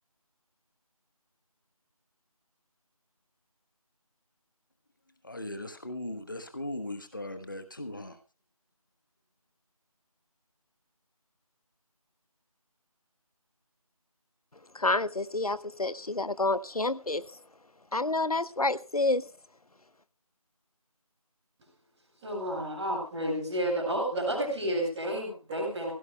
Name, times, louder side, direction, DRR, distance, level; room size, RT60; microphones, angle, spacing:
voice 1, 5.2-8.2, left 1 dB, 35° left, 1.2 m, -38 dB
voice 2, 14.7-17.2 17.9-19.3, left 2 dB, 75° left, 1.0 m, -28 dB
voice 3, 22.2-25.9, right 1 dB, 5° right, 2.3 m, -31 dB
24.5 x 16.5 x 2.3 m
figure-of-eight pair, 170°, 19 cm